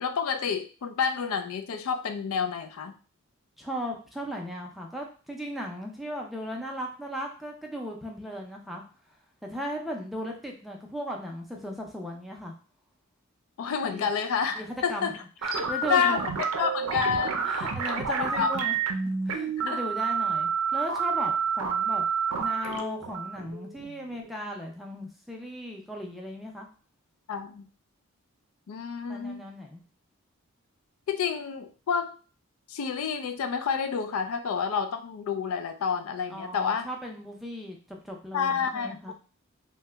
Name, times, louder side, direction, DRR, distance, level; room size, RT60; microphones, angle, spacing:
voice 1, 0.0-3.0 13.6-15.2 15.9-17.5 18.1-18.6 19.6-19.8 27.3-27.7 28.7-29.4 31.1-32.1 32.7-36.9 38.3-39.1, left 6 dB, 75° left, 7 dB, 0.4 m, -29 dB
voice 2, 3.6-8.8 9.5-12.5 13.8-14.1 14.5-15.1 15.4-16.2 17.4-18.8 19.3-22.1 22.4-26.7 29.1-29.8 36.3-39.1, equal, ahead, 0 dB, 0.4 m, -37 dB
sound 1, 15.4-24.3, right 6 dB, 90° right, 0.5 m, -29 dB
2.8 x 2.1 x 3.3 m, 0.38 s
head